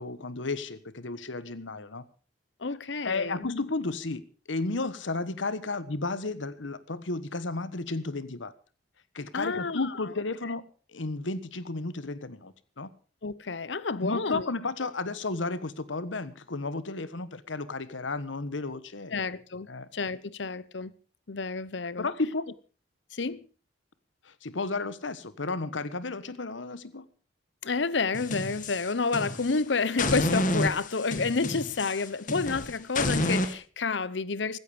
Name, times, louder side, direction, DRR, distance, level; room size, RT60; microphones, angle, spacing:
voice 1, 0.0-2.0 3.0-8.5 9.1-10.6 10.9-12.9 14.0-19.2 19.7-19.9 22.0-22.5 24.2-27.0, left 3 dB, 85° left, 1.2 m, -33 dB
voice 2, 2.6-3.6 9.3-9.9 10.4-10.5 13.2-14.5 19.1-19.7 19.9-20.9 21.3-22.1 23.1-23.5 27.6-34.6, left 4 dB, 70° left, 0.8 m, -30 dB
sound 1, 28.1-29.6 30.0-33.5, left 1 dB, 45° left, 1.8 m, -30 dB
16.0 x 14.0 x 5.0 m
head